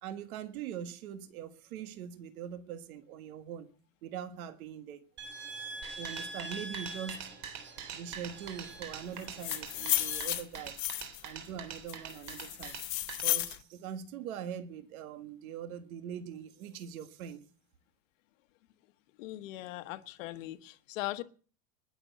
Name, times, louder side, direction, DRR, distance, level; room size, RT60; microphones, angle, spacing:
voice 1, 0.0-3.7 4.0-5.0 6.0-7.3 7.9-10.8 11.2-12.8 13.2-17.4, right 9 dB, 65° right, 1.7 m, -42 dB
sound 1, 5.2-10.2, right 2 dB, 25° right, 5.0 m, -45 dB
sound 2, 5.8-13.2, right 7 dB, 45° right, 3.7 m, -44 dB
sound 3, 9.2-11.3 11.9-13.6, left 17 dB, 30° left, 0.8 m, -33 dB
voice 2, 19.2-21.2, left 17 dB, 55° left, 1.2 m, -39 dB
20.5 x 7.1 x 8.2 m
supercardioid pair, 170°, 45 cm